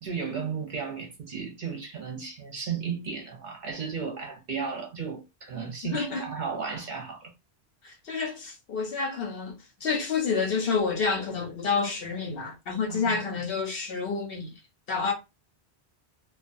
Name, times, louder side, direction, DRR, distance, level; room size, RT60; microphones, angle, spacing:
voice 1, 0.0-7.3 12.9-13.2, right 6 dB, 50° right, 0.7 m, -34 dB
voice 2, 5.9-6.3 7.8-14.5 14.9-15.1, left 5 dB, 60° left, 0.8 m, -29 dB
2.3 x 2.2 x 2.5 m
omnidirectional pair, 1.1 m